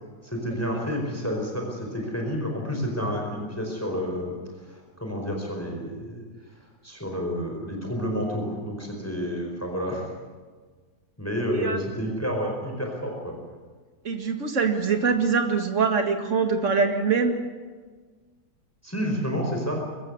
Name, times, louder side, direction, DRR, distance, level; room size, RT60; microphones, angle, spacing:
voice 1, 0.2-4.4 4.7-6.2 6.8-10.1 11.2-13.3 18.8-19.8, equal, 10° left, 1 dB, 4.7 m, -29 dB
voice 2, 14.0-17.3, right 5 dB, 45° right, 5 dB, 2.3 m, -23 dB
23.5 x 15.0 x 9.7 m, 1.5 s
omnidirectional pair, 1.9 m